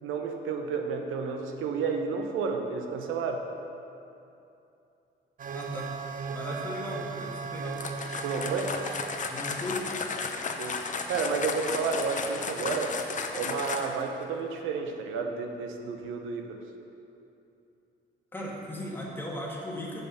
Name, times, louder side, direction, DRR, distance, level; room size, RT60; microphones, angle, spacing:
voice 1, 0.0-3.5 6.3-6.4 8.2-8.7 10.6-10.8 11.1-13.0 13.3-16.6, right 5 dB, 85° right, 4 dB, 0.7 m, -31 dB
sound 1, 5.4-9.4 11.2-11.3 16.0-16.1, right 5 dB, 45° right, 0.5 m, -36 dB
voice 2, 5.5-5.9 6.3-7.8 9.3-9.9 18.3-20.0, left 1 dB, 10° left, -4 dB, 1.7 m, -37 dB
sound 2, 7.7-14.1, left 4 dB, 40° left, 0.6 m, -34 dB
6.6 x 5.2 x 6.8 m, 2.8 s
cardioid pair, 90°, 20 cm